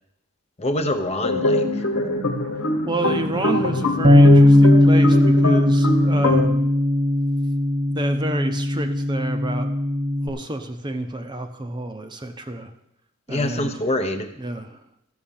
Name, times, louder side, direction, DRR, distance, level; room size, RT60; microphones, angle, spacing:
voice 1, 0.6-1.7 13.3-14.3, left 1 dB, 30° left, 7 dB, 0.9 m, -25 dB
sound 1, 1.2-6.5, left 1 dB, 65° left, 1.4 m, -23 dB
voice 2, 2.9-6.7 7.9-9.7 10.2-12.7 13.3-13.7 14.4-14.8, right 1 dB, 20° right, 6 dB, 0.7 m, -29 dB
Bass guitar, 4.0-10.3, left 1 dB, 45° right, 1.0 m, -17 dB
13.0 x 6.3 x 7.2 m, 0.82 s
head